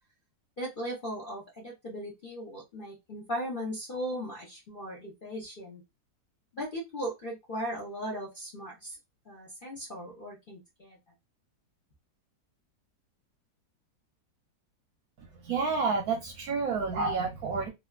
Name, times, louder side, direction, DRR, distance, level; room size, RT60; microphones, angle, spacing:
voice 1, 0.6-5.8 6.5-9.0 9.3-11.0, equal, 45° left, 0.7 m, -37 dB
voice 2, 15.2-17.7, right 4 dB, 65° right, 1.0 m, -30 dB
3.2 x 2.4 x 2.3 m
omnidirectional pair, 1.9 m